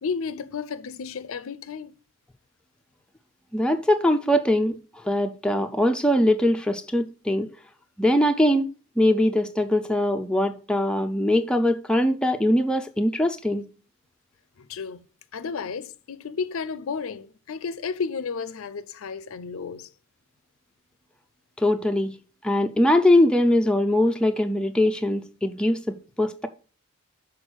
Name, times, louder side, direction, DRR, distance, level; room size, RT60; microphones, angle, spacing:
voice 1, 0.0-1.9 14.6-15.0 15.3-19.9, left 5 dB, 80° left, 0.5 m, -32 dB
voice 2, 3.5-4.7 5.0-7.5 8.0-8.7 9.0-13.6 21.6-22.2 22.4-26.5, left 1 dB, 5° left, 0.4 m, -22 dB
6.3 x 4.2 x 6.1 m
head